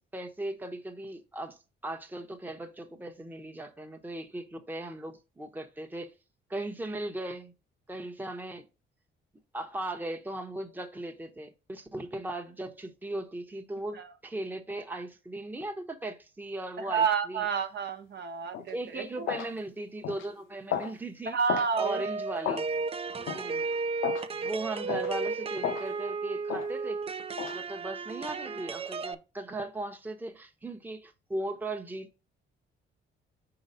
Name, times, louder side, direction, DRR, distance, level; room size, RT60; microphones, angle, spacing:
voice 1, 0.1-1.6 1.8-6.1 6.5-7.5 7.9-8.7 9.5-17.5 18.7-21.4 21.8-22.7 23.3-23.7 24.3-27.0 27.5-32.2, right 1 dB, 10° right, 0.9 m, -38 dB
voice 2, 16.8-19.3 21.3-22.0 22.5-22.6, right 6 dB, 60° right, 1.0 m, -30 dB
sound 1, 18.5-18.7 19.3-19.5 20.0-20.3 20.7-20.9 21.5-21.7 22.4-22.7 23.3-23.4 24.0-24.3 24.9-25.1 25.6-25.9 26.5-26.7 27.4-27.6, left 9 dB, 80° left, 0.7 m, -33 dB
sound 2, 21.8-29.1, right 4 dB, 30° right, 0.5 m, -34 dB
4.8 x 3.9 x 5.4 m
cardioid pair, 90°, 20 cm